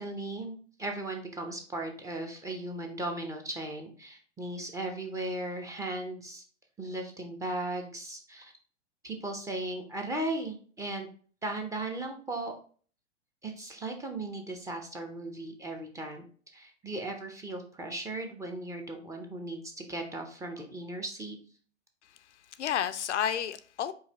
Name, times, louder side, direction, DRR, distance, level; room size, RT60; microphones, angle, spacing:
voice 1, 0.0-6.4 6.8-8.5 9.0-11.1 11.4-12.5 13.4-16.2 16.5-21.4, right 2 dB, 10° right, 0.6 m, -37 dB
voice 2, 22.0-23.9, left 9 dB, 75° left, 0.5 m, -32 dB
4.7 x 2.7 x 4.1 m
figure-of-eight pair, 100°, 35 cm